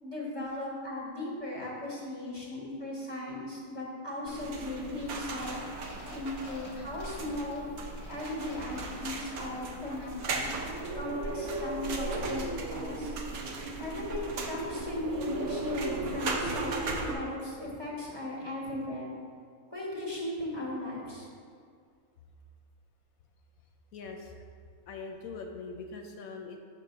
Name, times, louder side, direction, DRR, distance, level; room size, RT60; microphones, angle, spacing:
voice 1, 0.0-5.5 6.1-7.6 8.1-10.5 10.9-13.2 13.8-16.7 17.0-19.1 19.7-21.3, left 1 dB, 20° right, -4 dB, 1.0 m, -37 dB
sound 1, 4.3-17.1, right 2 dB, 75° right, 1.1 m, -36 dB
sound 2, 5.3-11.0 11.3-11.4, left 2 dB, 40° left, 0.9 m, -50 dB
voice 2, 23.9-24.4 24.9-26.6, left 4 dB, 75° left, 4 dB, 1.0 m, -42 dB
6.1 x 3.4 x 5.8 m, 2.2 s
omnidirectional pair, 1.6 m